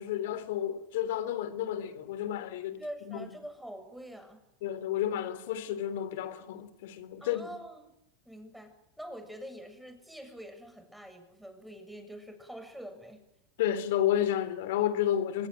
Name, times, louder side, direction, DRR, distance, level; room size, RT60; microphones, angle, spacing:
voice 1, 0.0-2.8 3.1-3.2 4.6-7.6 13.6-15.5, left 11 dB, 75° left, 3.4 m, -31 dB
voice 2, 2.8-4.4 7.2-7.9 8.2-13.2, equal, ahead, 7.7 m, -45 dB
26.0 x 21.5 x 9.3 m
hypercardioid pair, 95°, 0 cm